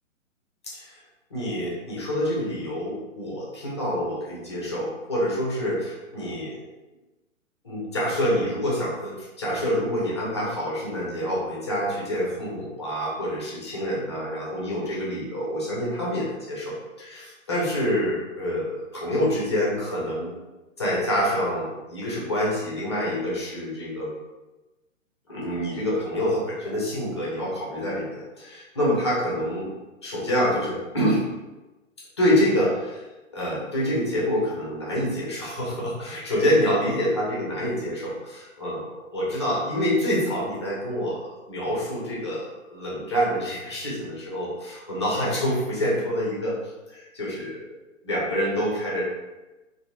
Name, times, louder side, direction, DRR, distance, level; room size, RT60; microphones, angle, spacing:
voice 1, 1.3-6.6 7.6-20.3 20.8-24.1 25.3-29.7 30.0-31.2 32.2-33.0 33.3-46.6 46.9-47.7 48.0-49.0, equal, 20° left, -6 dB, 0.4 m, -27 dB
2.8 x 2.5 x 2.3 m, 1.1 s
figure-of-eight pair, 125°, 40 cm